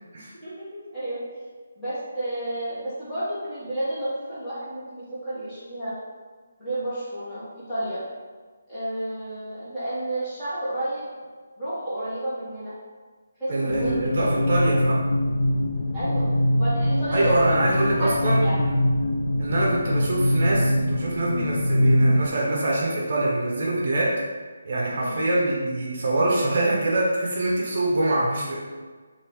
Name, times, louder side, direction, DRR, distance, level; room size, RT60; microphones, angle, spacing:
voice 1, 1.8-5.9 6.6-8.0 8.7-11.0 11.6-12.7 13.4-14.3 15.9-16.3 16.5-18.6 25.0-25.3, right 1 dB, 10° left, -13 dB, 1.2 m, -31 dB
voice 2, 13.5-15.0 17.1-18.8 19.4-24.2 24.6-28.6, right 2 dB, 45° right, -4 dB, 0.6 m, -24 dB
sound 1, 13.7-22.3, left 1 dB, 65° left, 0.4 m, -23 dB
2.8 x 2.5 x 3.4 m, 1.4 s
hypercardioid pair, 170°, 0 cm